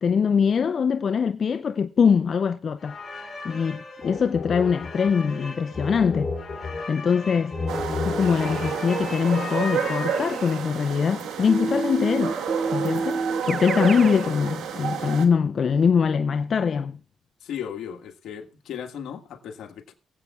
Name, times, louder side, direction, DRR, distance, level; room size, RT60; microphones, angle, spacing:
voice 1, 0.0-3.0 3.4-6.3 6.9-7.6 8.0-12.4 12.7-17.0, left 6 dB, 50° left, 0.5 m, -23 dB
sound 1, 2.8-10.7, left 3 dB, 30° left, 3.4 m, -33 dB
sound 2, 7.7-15.3, right 7 dB, 80° right, 1.4 m, -30 dB
Keyboard (musical), 11.5-14.2, right 4 dB, 40° right, 0.4 m, -28 dB
voice 2, 17.4-19.9, left 8 dB, 75° left, 1.6 m, -36 dB
22.5 x 8.2 x 2.4 m
cardioid pair, 90°, 0 cm